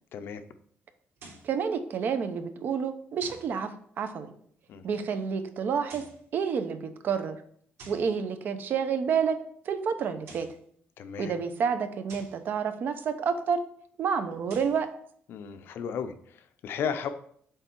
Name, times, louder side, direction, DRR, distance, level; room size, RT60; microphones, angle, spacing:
voice 1, 0.1-0.4 4.7-4.9 11.0-11.3 15.3-17.1, left 7 dB, 65° left, 9 dB, 0.6 m, -34 dB
sound 1, 1.2-1.5 3.2-3.5 5.7-6.2 7.8-8.1 10.1-10.6 12.1-12.4 14.3-14.8, right 3 dB, 80° right, 3.0 m, -49 dB
voice 2, 1.4-4.3 4.8-6.1 6.3-7.4 7.9-9.4 9.6-10.5 11.2-13.6 14.0-14.9, right 6 dB, 50° right, 10 dB, 0.7 m, -29 dB
8.1 x 3.4 x 4.5 m, 0.62 s
cardioid pair, 150°, 4 cm